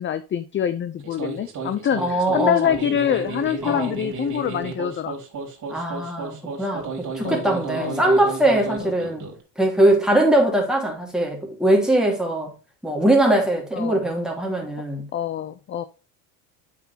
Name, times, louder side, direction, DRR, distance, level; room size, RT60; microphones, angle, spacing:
voice 1, 0.0-5.2 7.2-8.0 8.8-8.9 13.7-14.0 15.1-15.8, left 9 dB, 25° left, 0.6 m, -25 dB
sound 1, 1.0-9.4, right 4 dB, 40° right, 3.4 m, -33 dB
voice 2, 2.0-2.8 3.6-3.9 5.7-9.3 9.6-12.5 12.8-15.1, right 1 dB, ahead, 3.0 m, -21 dB
8.0 x 6.0 x 2.8 m
supercardioid pair, 95°, 44 cm